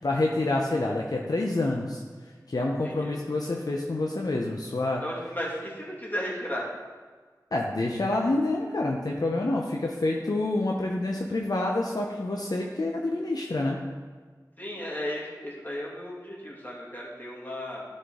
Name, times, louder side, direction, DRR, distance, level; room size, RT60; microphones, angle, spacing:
voice 1, 0.0-2.0 2.5-5.0 7.5-13.8, left 2 dB, 65° left, -1 dB, 0.7 m, -27 dB
voice 2, 5.0-6.7 14.6-17.8, equal, 25° left, -5 dB, 2.4 m, -35 dB
12.5 x 4.4 x 3.7 m, 1.5 s
wide cardioid pair, 55°, 7 cm